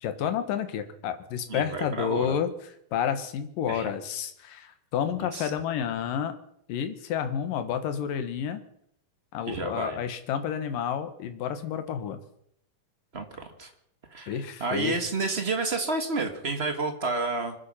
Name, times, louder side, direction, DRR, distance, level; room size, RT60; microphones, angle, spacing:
voice 1, 0.0-2.5 2.9-6.3 6.7-8.6 9.3-12.2 14.3-15.0, left 8 dB, 75° left, 9 dB, 3.1 m, -30 dB
voice 2, 1.5-2.4 3.7-3.8 5.3-5.5 9.5-10.0 13.1-13.7 14.1-17.5, right 3 dB, 35° right, 6 dB, 1.0 m, -30 dB
25.5 x 9.9 x 5.6 m, 0.71 s
omnidirectional pair, 4.0 m